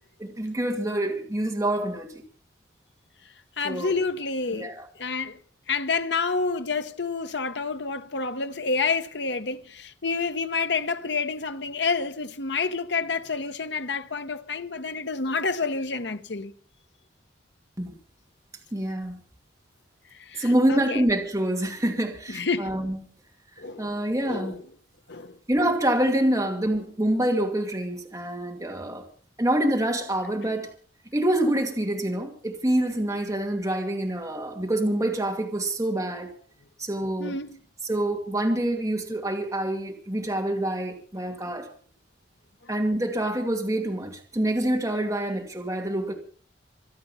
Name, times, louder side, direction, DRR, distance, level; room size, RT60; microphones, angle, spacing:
voice 1, 0.2-2.2 3.6-3.9 4.6-4.9 17.8-17.9 18.7-19.2 20.4-23.0 23.8-24.6 25.5-29.1 29.4-30.7 31.1-36.3 36.8-37.4 37.8-41.7 42.7-46.1, right 1 dB, 15° right, 2.5 m, -26 dB
voice 2, 3.6-5.4 5.7-16.5 20.1-21.0 22.3-22.8 23.6-23.9 24.2-24.6 25.1-25.4 37.2-37.6 42.6-42.7, left 4 dB, 70° left, 1.1 m, -29 dB
26.0 x 8.7 x 5.7 m
head